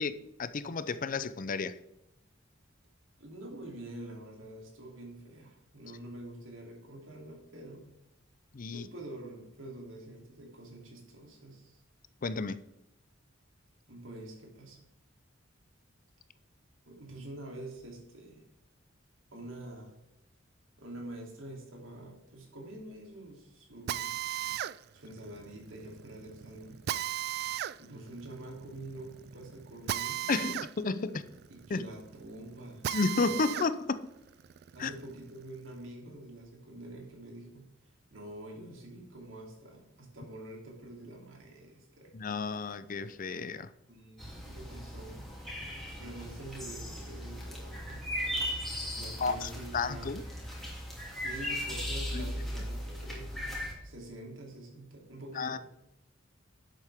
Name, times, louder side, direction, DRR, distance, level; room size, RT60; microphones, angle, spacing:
voice 1, 0.0-1.8 8.5-8.9 12.2-12.6 30.3-31.2 31.7-31.9 32.9-34.1 34.8-34.9 42.1-43.7 49.2-50.2 52.1-52.3 55.3-55.6, left 4 dB, 45° left, 0.5 m, -32 dB
voice 2, 3.2-7.9 8.7-11.8 13.9-14.8 16.9-18.4 19.3-20.0 20.8-24.2 24.9-26.8 27.8-30.3 31.1-31.2 31.5-32.9 33.1-33.3 34.7-37.7 38.1-42.1 43.9-45.2 46.0-48.0 48.9-50.2 51.1-55.6, right 1 dB, 80° right, 3.1 m, -46 dB
Drill, 23.9-33.7 34.2-35.8, right 11 dB, 55° right, 0.3 m, -37 dB
sound 1, 44.2-53.7, equal, ahead, 2.8 m, -38 dB
11.5 x 7.8 x 3.6 m
head